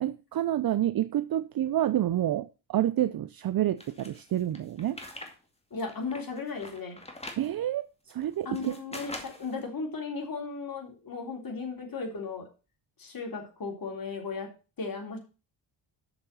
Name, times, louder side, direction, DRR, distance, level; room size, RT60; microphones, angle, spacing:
voice 1, 0.0-5.0 7.4-8.7, right 12 dB, 50° right, 0.6 m, -28 dB
sound 1, 3.8-5.3 5.7-7.5 8.1-9.5, left 1 dB, 15° left, 2.2 m, -43 dB
voice 2, 5.7-7.0 8.5-12.5 13.0-14.5 14.8-15.2, left 4 dB, 45° left, 3.6 m, -36 dB
7.1 x 6.6 x 6.8 m
cardioid pair, 75°, 47 cm